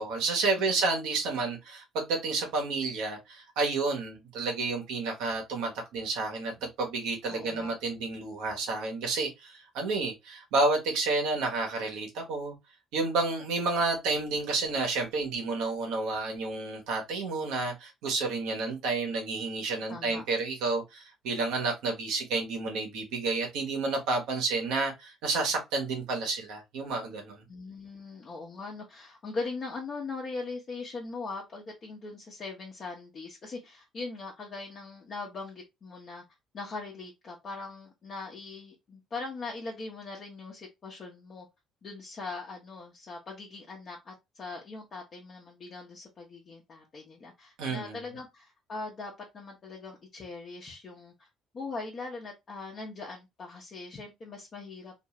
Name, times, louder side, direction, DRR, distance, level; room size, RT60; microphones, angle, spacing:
voice 1, 0.0-12.5 12.9-27.4 47.6-48.0, right 3 dB, 80° right, 0.9 m, -30 dB
voice 2, 7.3-7.7 19.9-20.2 27.5-36.2 36.5-41.5 41.8-51.3 51.5-54.9, left 3 dB, 45° left, 0.8 m, -40 dB
2.5 x 2.3 x 2.9 m
supercardioid pair, 65°, 0 cm